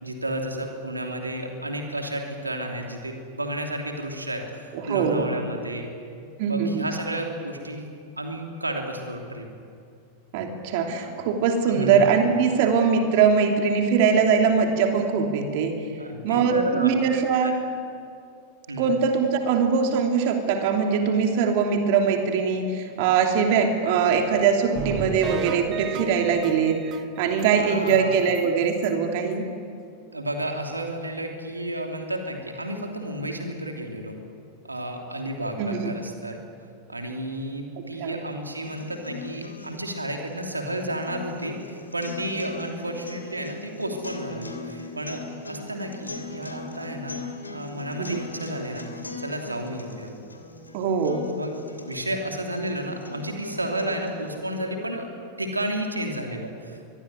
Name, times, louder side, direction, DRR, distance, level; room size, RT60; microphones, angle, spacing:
voice 1, 0.0-5.9 6.5-7.9 8.2-9.5 11.7-12.0 16.0-16.9 17.4-17.5 18.7-18.9 27.5-28.2 30.1-34.2 34.6-36.4 36.9-50.1 51.4-55.1 55.4-56.9, right 1 dB, 80° right, 2 dB, 3.0 m, -32 dB
voice 2, 4.7-5.3 6.4-6.8 10.3-15.8 16.2-17.5 18.8-29.5 35.6-35.9 37.8-38.1 48.0-48.2 50.7-51.3, right 6 dB, 50° right, 3 dB, 2.9 m, -22 dB
sound 1, 24.8-27.5 27.9-28.0 28.4-28.5 28.8-28.9, right 8 dB, 30° right, 1.8 m, -33 dB
sound 2, 38.6-54.6, left 3 dB, 80° left, 3.0 m, -40 dB
24.5 x 22.0 x 9.7 m, 2.4 s
figure-of-eight pair, 90°, 0 cm